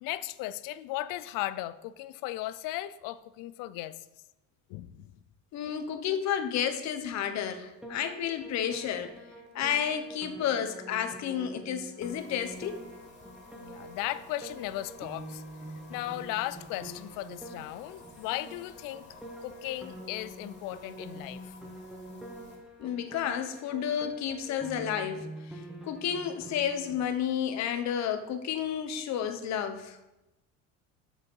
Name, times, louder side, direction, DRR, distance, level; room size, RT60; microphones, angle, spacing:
voice 1, 0.0-4.0 4.7-5.1 13.6-15.4 15.9-19.1 19.4-21.5, left 15 dB, 75° left, 0.6 m, -36 dB
voice 2, 5.5-9.1 9.5-12.8 22.8-30.0, left 9 dB, 55° left, 1.0 m, -31 dB
Piano, 7.8-27.0, right 1 dB, ahead, 1.3 m, -46 dB
sound 1, 12.0-22.6, left 3 dB, 35° left, 2.8 m, -54 dB
7.3 x 6.8 x 5.5 m
cardioid pair, 125°, 33 cm